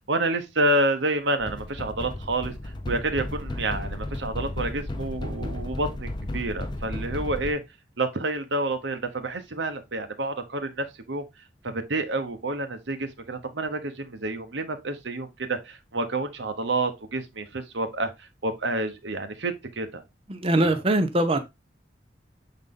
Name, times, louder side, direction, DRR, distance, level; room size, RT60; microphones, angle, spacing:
voice 1, 0.1-2.5 2.9-7.6 8.0-11.2 11.6-20.0 20.6-20.7, right 2 dB, 85° right, 1.0 m, -29 dB
sound 1, 1.4-7.5, left 1 dB, 25° left, 0.7 m, -34 dB
voice 2, 20.3-21.4, right 1 dB, 30° right, 0.7 m, -22 dB
6.4 x 4.0 x 3.7 m
head